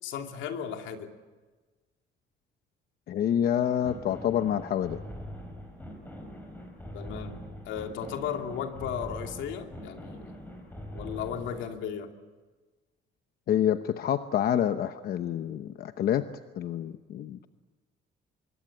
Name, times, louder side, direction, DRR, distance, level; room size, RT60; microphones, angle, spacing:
voice 1, 0.0-1.1 6.9-10.3 10.9-12.1, left 8 dB, 80° left, 4 dB, 2.7 m, -35 dB
voice 2, 3.1-5.0 13.5-16.3 16.6-17.5, left 10 dB, 55° left, 9 dB, 0.9 m, -27 dB
sound 1, 3.8-11.7, equal, 10° left, 4.8 m, -43 dB
25.5 x 23.0 x 8.8 m, 1.3 s
cardioid pair, 165°, 19 cm